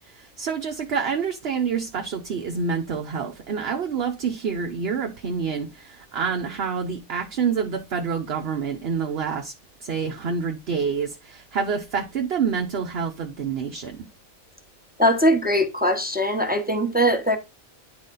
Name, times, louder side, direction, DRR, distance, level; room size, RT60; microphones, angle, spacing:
voice 1, 0.1-9.5 9.8-14.1, right 6 dB, 60° right, 1.0 m, -27 dB
voice 2, 15.0-17.4, equal, 10° right, 1.0 m, -21 dB
10.5 x 4.0 x 3.8 m
omnidirectional pair, 1.2 m